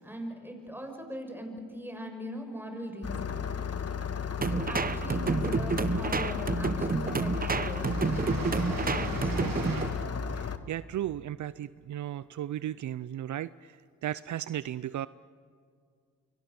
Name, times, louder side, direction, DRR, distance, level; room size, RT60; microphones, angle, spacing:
voice 1, 0.0-3.5 4.5-9.9, equal, 5° right, 4 dB, 6.6 m, -41 dB
Engine starting, 3.0-10.6, left 6 dB, 45° left, 1.6 m, -34 dB
sound 1, 4.4-9.9, right 4 dB, 25° right, 0.9 m, -30 dB
sound 2, 4.7-5.3 6.2-6.3 6.6-9.8, right 3 dB, 85° right, 4.6 m, -39 dB
voice 2, 10.3-13.5 14.0-15.1, right 12 dB, 60° right, 17 dB, 0.6 m, -35 dB
28.5 x 23.5 x 7.0 m, 2.1 s
supercardioid pair, 60°, 33 cm